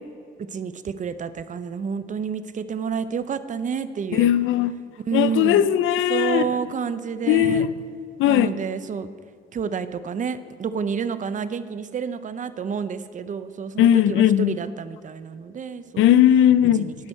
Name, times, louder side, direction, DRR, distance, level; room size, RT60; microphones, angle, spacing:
voice 1, 0.4-4.3 5.0-5.7 6.1-7.7 8.2-9.1 9.5-16.1 16.7-17.0, right 6 dB, 40° right, 0.6 m, -29 dB
voice 2, 4.1-4.7 5.1-6.4 7.3-7.7 8.2-8.5 13.8-14.6 16.0-16.9, left 11 dB, 85° left, 0.5 m, -18 dB
18.0 x 6.3 x 4.3 m
cardioid pair, 90°, 20 cm